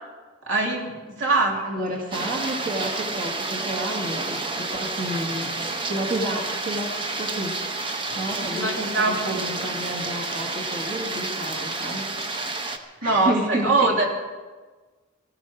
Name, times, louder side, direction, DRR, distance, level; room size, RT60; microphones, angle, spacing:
voice 1, 0.5-0.9 1.2-1.6 8.4-9.5 13.0-14.1, right 3 dB, 70° right, 0 dB, 2.7 m, -22 dB
voice 2, 1.2-5.5 5.9-6.9 7.2-7.5 8.1-12.1 13.0-13.9, right 1 dB, 45° right, -3 dB, 1.9 m, -30 dB
sound 1, 2.1-12.8, right 3 dB, 25° right, 0.9 m, -30 dB
18.5 x 14.0 x 4.9 m, 1.3 s
head